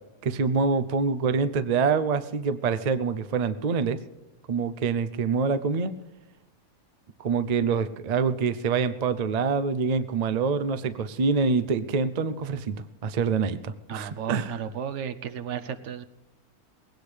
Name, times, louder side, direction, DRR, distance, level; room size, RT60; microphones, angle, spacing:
voice 1, 0.2-4.0 4.5-5.9 7.2-12.8 13.0-14.6, right 5 dB, 75° right, 11 dB, 0.3 m, -25 dB
voice 2, 13.9-16.0, right 8 dB, 60° right, 12 dB, 0.9 m, -34 dB
20.0 x 17.0 x 3.4 m, 1.1 s
omnidirectional pair, 1.6 m